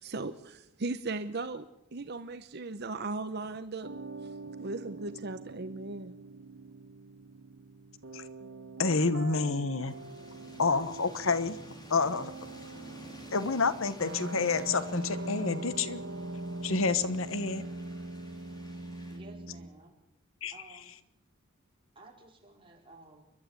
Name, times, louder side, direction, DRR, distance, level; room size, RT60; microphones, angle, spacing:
voice 1, 0.0-3.9 4.6-6.2, right 3 dB, 55° right, 10 dB, 0.8 m, -37 dB
sound 1, 3.8-19.7, right 2 dB, 75° right, 2.0 m, -42 dB
voice 2, 8.8-9.9 10.6-11.6 11.9-12.3 13.3-16.0 16.6-17.6 20.4-20.8, left 4 dB, 80° left, 13 dB, 1.1 m, -29 dB
sound 2, 9.9-19.2, left 1 dB, 20° left, 3.4 m, -52 dB
voice 3, 19.1-20.0 20.5-21.0 21.9-23.2, right 2 dB, 25° right, 0 dB, 4.7 m, -54 dB
29.0 x 12.0 x 8.3 m, 0.83 s
head